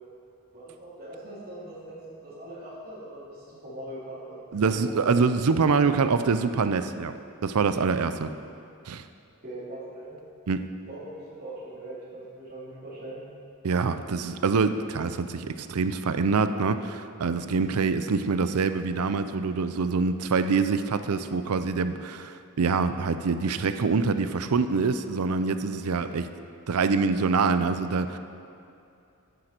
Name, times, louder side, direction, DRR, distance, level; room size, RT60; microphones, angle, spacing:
voice 1, 0.5-5.2 9.4-10.2 10.9-13.2 25.8-26.1, right 1 dB, 40° right, -9 dB, 3.0 m, -41 dB
voice 2, 4.5-7.1 7.4-8.3 8.9-9.0 10.5-10.7 13.6-26.2 26.7-28.2, right 4 dB, 85° right, 10 dB, 0.5 m, -25 dB
10.0 x 10.0 x 4.4 m, 2.5 s
head